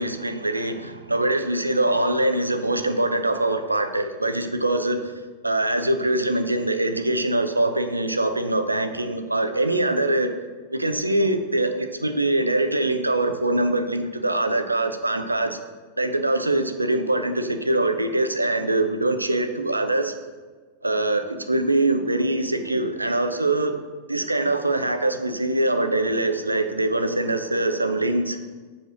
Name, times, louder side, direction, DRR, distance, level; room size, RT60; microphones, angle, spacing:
voice 1, 0.0-5.0 5.4-10.3 10.7-15.6 16.0-20.1 20.8-23.7 24.1-28.4, right 2 dB, 85° right, 7 dB, 0.7 m, -23 dB
8.1 x 4.4 x 6.1 m, 1.4 s
figure-of-eight pair, 90°, 0 cm